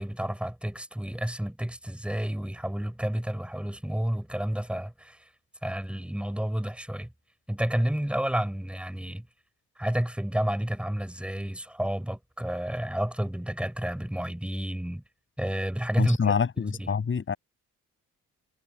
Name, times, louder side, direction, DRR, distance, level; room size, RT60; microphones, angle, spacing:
voice 1, 0.0-5.3 5.6-7.1 7.5-9.3 9.8-15.0 15.4-16.9, equal, 5° right, 6.6 m, -30 dB
voice 2, 16.0-17.4, left 6 dB, 40° left, 7.4 m, -26 dB
cardioid pair, 90°, 30 cm